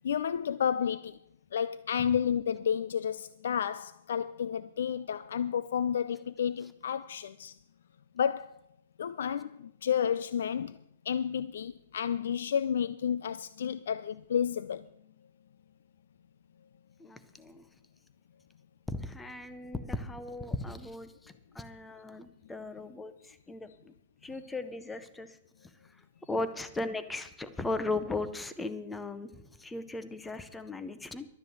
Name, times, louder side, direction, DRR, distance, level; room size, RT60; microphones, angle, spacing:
voice 1, 0.0-1.2 1.5-7.5 8.2-8.5 9.0-10.8 11.1-14.9, left 8 dB, 65° left, 0.4 m, -31 dB
voice 2, 17.0-17.6 18.9-23.9 24.2-25.4 26.3-31.3, left 2 dB, 5° left, 0.6 m, -37 dB
12.0 x 7.9 x 7.8 m
hypercardioid pair, 175°, 0 cm